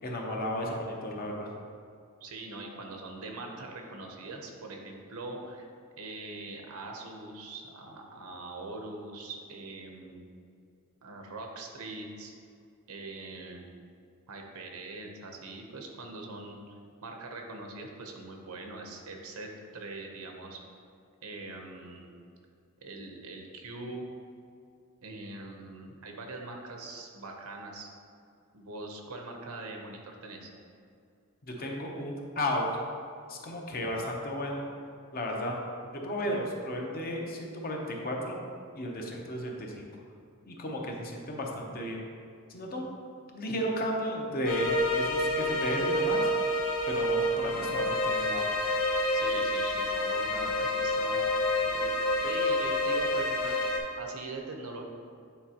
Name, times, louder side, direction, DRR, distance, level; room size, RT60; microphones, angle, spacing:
voice 1, 0.0-1.5 31.4-32.7 33.3-34.7 35.1-35.6 35.9-38.4 38.7-39.9 40.5-42.0 42.5-42.9 43.3-46.3 46.9-48.4, equal, 45° left, 0 dB, 0.8 m, -34 dB
voice 2, 2.2-5.7 6.0-10.2 11.0-12.3 12.9-13.6 14.3-16.7 17.0-20.6 21.2-22.1 22.8-24.0 25.0-27.9 28.5-30.5 49.1-51.3 51.6-53.6 54.0-54.8, right 2 dB, 90° right, 2 dB, 0.9 m, -42 dB
sound 1, 44.5-53.8, left 1 dB, 80° left, 0.9 m, -28 dB
8.9 x 4.2 x 2.9 m, 2.4 s
head